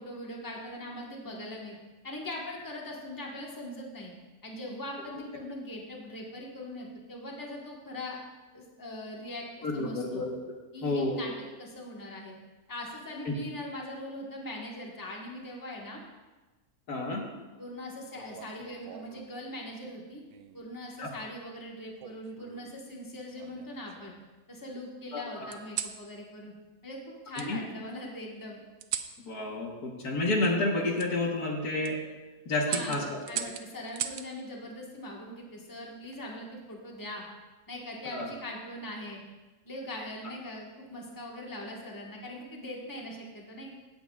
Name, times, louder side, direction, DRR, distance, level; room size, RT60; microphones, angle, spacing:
voice 1, 0.0-1.7 2.0-4.1 4.4-8.2 8.5-10.2 10.7-11.3 11.6-12.3 12.7-16.0 17.6-20.2 20.5-24.1 24.5-26.5 26.8-28.6 32.7-37.2 37.7-39.2 39.6-43.7, left 1 dB, 15° left, -2 dB, 1.3 m, -41 dB
voice 2, 9.6-10.4 10.8-11.2 13.2-13.3 16.9-17.2 21.0-21.1 25.1-25.5 27.4-27.6 29.3-32.0 32.5-33.5 38.1-38.3, left 2 dB, 80° left, 0 dB, 1.9 m, -30 dB
sound 1, 18.1-19.3 20.3-20.7 22.0-22.7 23.4-24.3 25.5-26.0 27.3-27.5 28.8-29.2 31.0-31.1 31.6-31.9 32.7-34.3 35.8-36.2, right 9 dB, 70° right, 0.9 m, -38 dB
16.0 x 7.7 x 2.4 m, 1.2 s
omnidirectional pair, 1.6 m